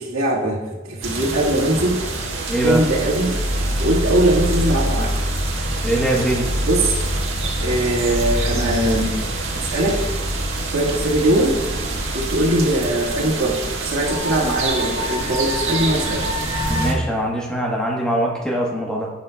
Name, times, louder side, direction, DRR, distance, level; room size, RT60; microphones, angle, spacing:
voice 1, 0.0-2.0 2.6-3.4 3.8-5.1 6.6-7.0 7.6-9.2 9.5-10.0 10.7-11.6 12.1-16.3, right 1 dB, 85° right, -2 dB, 1.7 m, -21 dB
sound 1, 1.0-16.9, right 1 dB, 70° right, 1.5 m, -24 dB
voice 2, 2.5-2.8 5.8-6.5 16.7-19.1, right 1 dB, 5° left, -2 dB, 1.1 m, -22 dB
10.5 x 8.3 x 2.3 m, 1.2 s
head